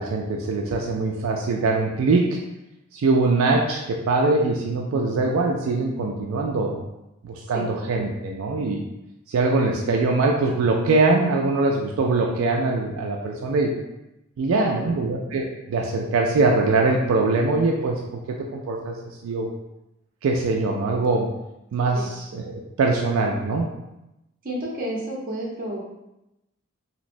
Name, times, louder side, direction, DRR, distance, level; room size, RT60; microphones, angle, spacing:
voice 1, 0.0-2.4 2.9-6.8 7.2-8.8 9.3-13.7 14.4-19.5 20.2-21.3 21.7-23.7, right 3 dB, 80° right, 0 dB, 0.3 m, -22 dB
voice 2, 7.4-7.7 14.5-15.0 21.9-22.1 24.4-25.9, right 1 dB, 45° right, -3 dB, 0.8 m, -31 dB
3.0 x 2.8 x 2.5 m, 0.91 s
head